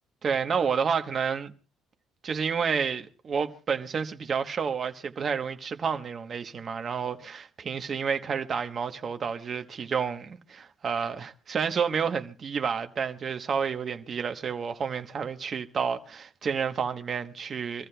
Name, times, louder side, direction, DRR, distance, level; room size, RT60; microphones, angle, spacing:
voice 1, 0.2-1.5 2.2-17.9, right 6 dB, 30° right, 0.9 m, -30 dB
26.0 x 14.5 x 2.2 m
cardioid pair, 165°, 0 cm